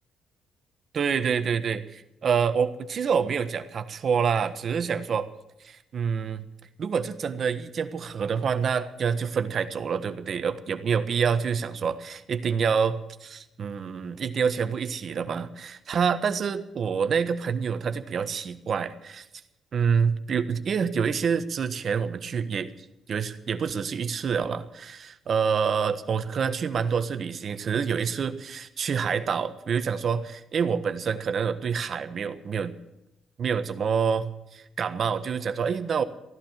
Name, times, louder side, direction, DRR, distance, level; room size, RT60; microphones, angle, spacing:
voice 1, 0.9-5.3 5.6-6.5 6.8-19.2 19.7-22.7 23.1-32.7 33.4-36.0, right 6 dB, 55° right, 10 dB, 1.3 m, -27 dB
16.0 x 11.5 x 7.6 m, 0.91 s
cardioid pair, 90°, 0 cm